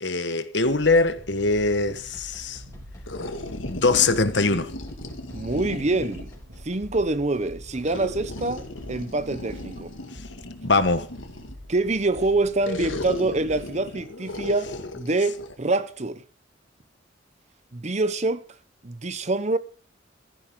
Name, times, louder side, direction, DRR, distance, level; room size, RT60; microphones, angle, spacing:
voice 1, 0.0-2.6 3.6-4.7 10.6-11.1, left 3 dB, 60° left, 1.4 m, -22 dB
sound 1, 0.6-13.6, left 1 dB, 70° right, 2.8 m, -45 dB
sound 2, 1.2-9.2, equal, 15° left, 4.0 m, -48 dB
sound 3, 3.0-6.4 7.8-11.7 12.6-15.5, left 2 dB, 90° left, 2.1 m, -36 dB
voice 2, 5.3-6.3 6.6-9.9 11.7-16.2 17.7-18.4 18.8-19.6, right 2 dB, 35° right, 0.8 m, -25 dB
16.0 x 14.0 x 3.8 m
head